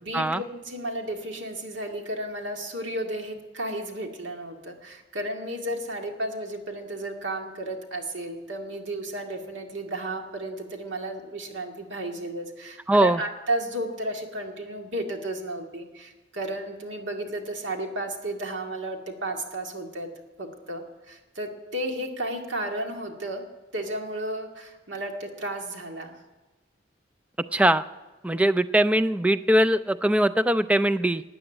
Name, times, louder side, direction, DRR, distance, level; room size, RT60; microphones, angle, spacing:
voice 1, 0.0-20.1 20.4-23.5 23.7-26.2, right 1 dB, 90° right, 3 dB, 2.1 m, -33 dB
voice 2, 12.9-13.2 27.5-27.8 28.2-31.2, right 1 dB, 5° right, 12 dB, 0.4 m, -21 dB
14.0 x 9.2 x 8.7 m, 1.2 s
head